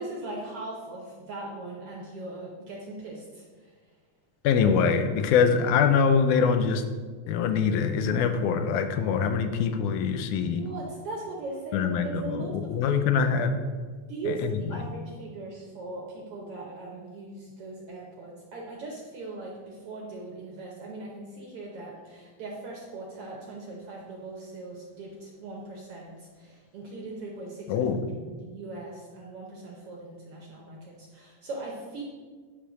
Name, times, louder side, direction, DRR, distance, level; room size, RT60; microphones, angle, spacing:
voice 1, 0.0-3.7 10.5-12.7 13.2-13.4 14.1-27.9 28.3-32.0, right 2 dB, 65° right, -2 dB, 1.5 m, -39 dB
voice 2, 4.4-6.8 7.3-10.6 11.7-13.6 14.3-14.4 14.7-14.8 27.7-28.1, left 6 dB, 80° left, 7 dB, 2.0 m, -24 dB
10.0 x 3.4 x 6.1 m, 1.5 s
omnidirectional pair, 3.6 m